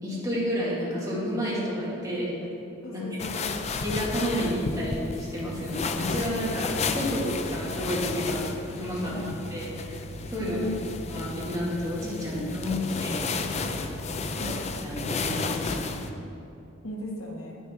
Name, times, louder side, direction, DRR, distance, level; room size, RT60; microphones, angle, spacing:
voice 1, 0.0-2.3 2.9-3.0 3.8-8.4 8.8-9.1 9.5-10.0 10.3-10.6 11.1-13.8 14.4-14.5 14.8-16.0, equal, 15° right, -8 dB, 2.3 m, -31 dB
voice 2, 2.8-3.6 9.1-9.3 10.4-10.7 13.8-13.9 14.4-14.5 16.8-17.6, left 1 dB, 90° left, -1 dB, 1.3 m, -37 dB
sound 1, 3.2-16.1, left 3 dB, 30° left, 0.4 m, -32 dB
9.5 x 6.3 x 4.5 m, 2.7 s
head